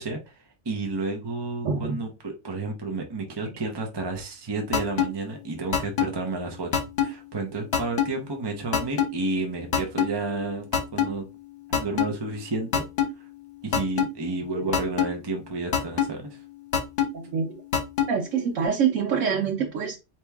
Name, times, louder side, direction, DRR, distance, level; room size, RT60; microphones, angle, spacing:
voice 1, 0.0-11.3 11.7-12.8 13.6-16.4, right 3 dB, 25° right, 0.6 m, -31 dB
voice 2, 1.6-2.0 17.1-17.6 18.1-20.0, right 6 dB, 85° right, 1.2 m, -25 dB
sound 1, 4.7-5.1 5.7-6.1 6.7-7.1 7.7-8.1 8.7-9.1 9.7-10.1 10.7-11.1 11.7-12.1 12.7-13.1 13.7-14.1 14.7-15.1 15.7-16.1 16.7-17.1 17.7-18.1, left 8 dB, 55° left, 1.1 m, -22 dB
4.3 x 2.9 x 3.5 m
omnidirectional pair, 1.3 m